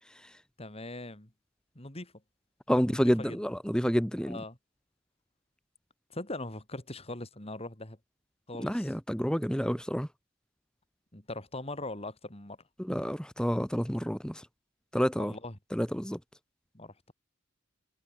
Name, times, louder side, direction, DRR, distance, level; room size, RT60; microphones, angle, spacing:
voice 1, 0.6-1.3 1.8-2.1 2.9-3.4 4.3-4.6 6.1-8.0 8.5-8.9 11.1-12.6 15.2-15.5 16.7-17.1, left 2 dB, 30° left, 3.8 m, -41 dB
voice 2, 2.7-4.4 8.6-10.1 12.8-14.5 14.9-15.3 15.7-16.2, equal, 5° left, 3.3 m, -29 dB
head